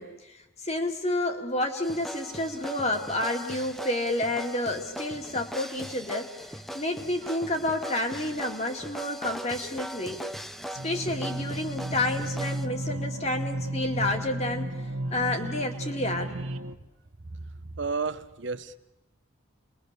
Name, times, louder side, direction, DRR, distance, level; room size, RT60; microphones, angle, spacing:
voice 1, 0.0-6.3 6.7-10.2 10.8-14.8 15.1-16.3, left 1 dB, 30° left, 4 dB, 2.4 m, -30 dB
sound 1, 1.8-12.7, equal, ahead, 0.8 m, -40 dB
sound 2, 10.7-16.7, right 1 dB, 85° right, 1.2 m, -33 dB
voice 2, 17.3-18.8, right 4 dB, 60° right, 11 dB, 1.1 m, -33 dB
29.5 x 22.0 x 6.8 m, 0.96 s
head